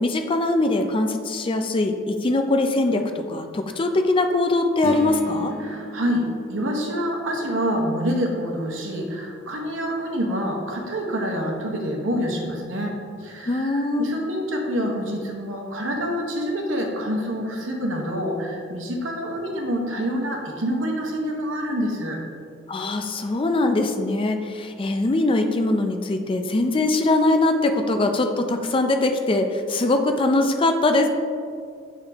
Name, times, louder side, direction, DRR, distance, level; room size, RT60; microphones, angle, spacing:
voice 1, 0.0-5.5 13.5-14.1 22.7-31.1, left 2 dB, 25° left, 6 dB, 0.4 m, -22 dB
sound 1, 4.8-9.1, right 2 dB, 50° right, 0.6 m, -37 dB
voice 2, 5.6-22.2, equal, 80° right, 1 dB, 1.0 m, -27 dB
8.3 x 3.7 x 3.5 m, 2.2 s
head